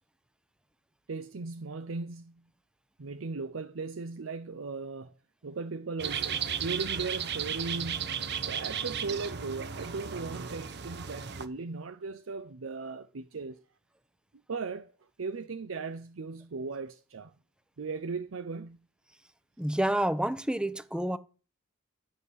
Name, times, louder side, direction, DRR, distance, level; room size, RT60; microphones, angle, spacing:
voice 1, 1.1-2.5 3.0-5.1 5.4-8.2 8.5-13.6 14.5-14.9 15.2-17.3 17.8-18.9, right 4 dB, 80° right, 0.6 m, -37 dB
sound 1, 6.0-11.5, right 7 dB, 55° right, 1.0 m, -35 dB
voice 2, 19.6-21.2, right 1 dB, 5° right, 0.7 m, -28 dB
12.5 x 5.5 x 8.0 m
head